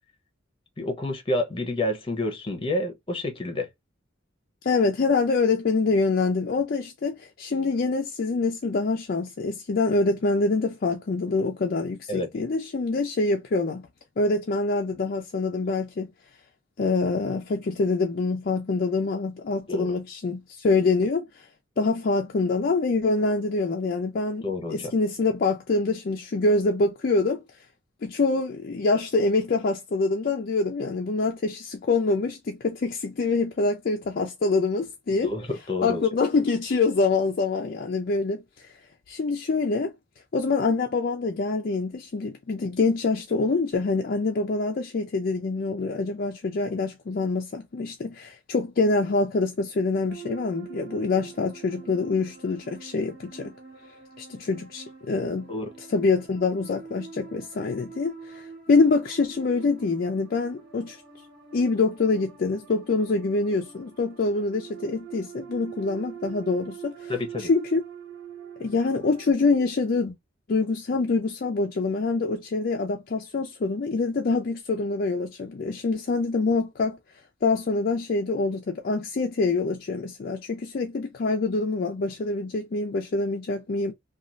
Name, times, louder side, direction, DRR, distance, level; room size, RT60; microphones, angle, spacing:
voice 1, 0.8-3.7 12.1-12.3 19.7-19.9 24.4-24.9 35.1-36.0 55.5-55.7 67.1-67.5, left 2 dB, 25° left, 0.8 m, -29 dB
voice 2, 4.6-13.8 14.2-16.1 16.8-21.5 21.8-27.4 28.0-35.3 35.8-38.7 39.1-39.9 40.3-53.5 54.2-55.4 55.9-61.0 61.5-67.1 67.4-67.8 68.6-70.1 70.5-77.0 77.4-83.9, left 3 dB, 50° left, 0.4 m, -25 dB
sound 1, 50.1-69.3, right 7 dB, 60° right, 1.4 m, -44 dB
3.0 x 2.4 x 2.4 m
head